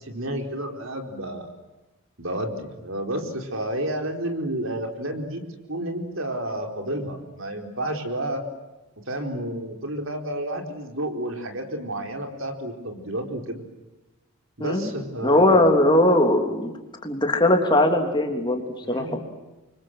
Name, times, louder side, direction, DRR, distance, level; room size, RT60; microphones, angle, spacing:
voice 1, 0.0-1.5 2.2-5.4 5.7-8.4 9.0-13.6 14.6-15.7 18.8-19.2, right 1 dB, 60° right, 4 dB, 4.6 m, -30 dB
voice 2, 15.2-16.7 17.0-19.2, left 1 dB, 20° left, 4 dB, 3.1 m, -20 dB
29.0 x 25.0 x 7.8 m, 1.1 s
head